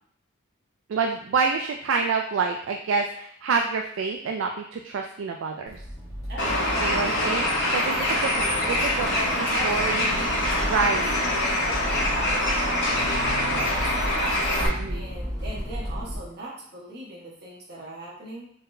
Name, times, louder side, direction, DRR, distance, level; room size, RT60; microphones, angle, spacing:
voice 1, 0.9-5.8 6.8-9.1 9.6-10.1 10.7-11.1 14.6-15.1, right 4 dB, 70° right, 3 dB, 0.3 m, -27 dB
Accelerating revving vroom, 5.7-16.2, equal, 15° left, 1.4 m, -34 dB
voice 2, 6.3-7.5 9.1-14.3 14.9-18.5, right 1 dB, 50° right, -4 dB, 1.2 m, -41 dB
Bird, 6.4-14.7, left 1 dB, 60° left, 1.1 m, -25 dB
sound 1, 6.8-8.8 9.1-14.0, left 2 dB, 90° left, 0.9 m, -36 dB
3.8 x 3.8 x 2.6 m, 0.63 s
head